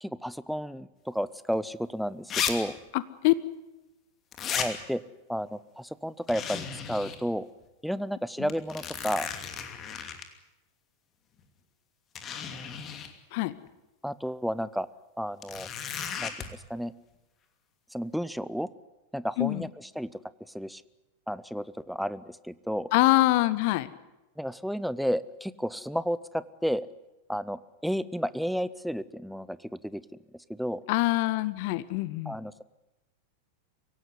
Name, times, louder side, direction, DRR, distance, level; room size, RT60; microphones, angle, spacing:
voice 1, 0.0-2.8 4.5-5.0 5.3-7.5 7.8-9.3 14.0-14.9 15.2-15.7 16.2-16.9 17.9-18.7 19.1-20.1 20.5-20.8 21.3-22.9 24.4-26.9 27.3-30.0 30.5-30.8 32.2-32.6, equal, ahead, 17 dB, 0.8 m, -32 dB
sound 1, 1.5-1.6 2.3-2.5 2.8-2.9 4.3-4.7 6.3-7.2 7.6-7.7 8.5-10.2 11.4-11.5 12.1-13.1 15.4-16.5, left 7 dB, 30° left, 2.7 m, -34 dB
voice 2, 2.9-3.3 13.3-13.5 19.4-19.6 22.9-23.9 30.9-32.3, left 19 dB, 45° left, 16 dB, 1.1 m, -24 dB
24.5 x 17.0 x 9.7 m, 1.0 s
figure-of-eight pair, 90°, 0 cm